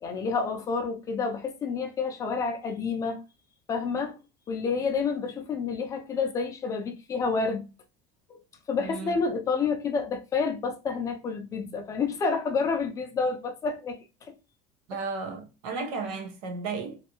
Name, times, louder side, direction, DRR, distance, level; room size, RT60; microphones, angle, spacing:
voice 1, 0.0-3.2 3.7-4.2 4.5-7.6 8.3-8.4 8.7-14.0 14.3-14.4, left 5 dB, 20° left, 0.5 m, -29 dB
voice 2, 8.8-9.2 14.9-17.0, right 4 dB, 75° right, 0.9 m, -34 dB
3.2 x 2.6 x 2.9 m
cardioid pair, 180°, 17 cm